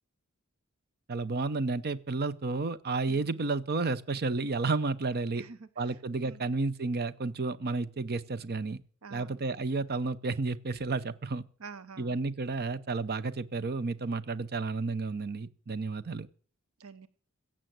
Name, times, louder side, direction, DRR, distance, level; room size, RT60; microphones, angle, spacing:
voice 1, 1.1-5.4 5.8-8.8 9.1-11.4 12.0-16.3, right 3 dB, 45° right, 0.7 m, -31 dB
voice 2, 5.4-5.7 6.2-6.5 9.0-9.4 11.6-12.2 16.8-17.1, right 5 dB, 70° right, 0.9 m, -47 dB
16.0 x 7.6 x 7.6 m
head